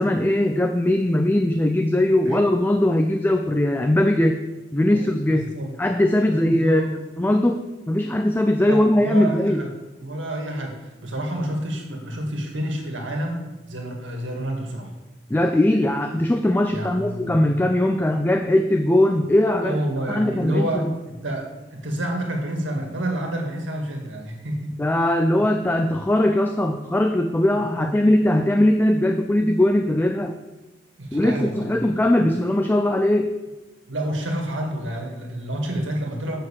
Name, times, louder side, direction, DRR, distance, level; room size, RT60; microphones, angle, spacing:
voice 1, 0.0-4.4 4.7-6.8 7.2-9.6 15.3-19.8 20.1-20.9 24.8-30.3 31.1-33.3, left 1 dB, 10° left, 6 dB, 0.4 m, -20 dB
voice 2, 4.9-5.7 6.3-6.9 8.6-9.7 10.0-14.9 16.7-17.4 19.6-24.7 27.7-27.9 31.0-31.9 33.9-36.4, right 1 dB, 90° right, 2 dB, 1.9 m, -29 dB
6.5 x 6.5 x 7.3 m, 1.1 s
head